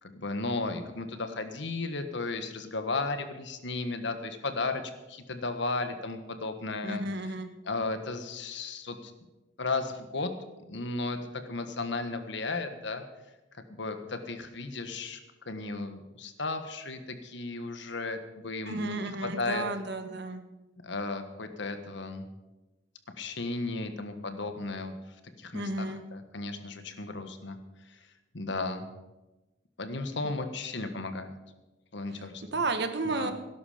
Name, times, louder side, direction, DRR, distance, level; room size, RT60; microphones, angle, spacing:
voice 1, 0.0-4.8 5.1-7.4 7.6-9.1 9.6-10.3 10.7-13.0 13.5-15.2 15.5-18.2 18.4-19.6 20.8-22.3 23.2-24.9 25.4-27.6 27.8-28.1 28.3-28.9 29.8-31.4 31.9-32.6 33.0-33.3, left 3 dB, 65° left, 7 dB, 1.5 m, -35 dB
voice 2, 6.8-7.5 18.7-20.4 25.5-26.0 32.5-33.3, right 2 dB, 60° right, 8 dB, 1.3 m, -32 dB
18.0 x 11.5 x 5.1 m, 1.1 s
head